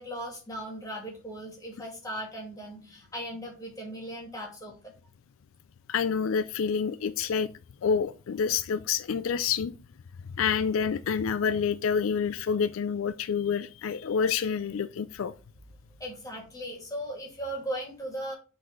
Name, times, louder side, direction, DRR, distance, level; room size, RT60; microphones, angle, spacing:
voice 1, 0.0-4.9 16.0-18.3, equal, 15° left, 2.3 m, -38 dB
voice 2, 5.9-7.5 7.8-9.7 10.3-15.3, left 6 dB, 75° left, 0.4 m, -28 dB
7.6 x 4.1 x 3.7 m
head